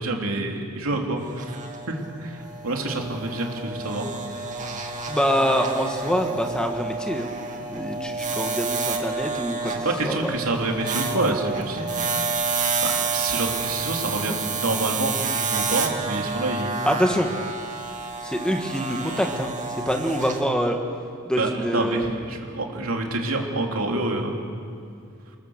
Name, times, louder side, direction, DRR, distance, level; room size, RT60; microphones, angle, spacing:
voice 1, 0.0-1.5 1.9-4.1 4.4-4.5 9.8-12.2 12.8-16.8 21.4-24.4, right 2 dB, 70° right, 1 dB, 3.2 m, -27 dB
sound 1, 1.2-20.4, right 4 dB, 35° right, 2.3 m, -29 dB
voice 2, 5.1-7.3 7.7-9.7 10.0-10.4 16.8-17.3 18.2-20.8 21.2-22.1, equal, 5° left, 3 dB, 1.6 m, -25 dB
28.0 x 19.0 x 7.3 m, 2.4 s
head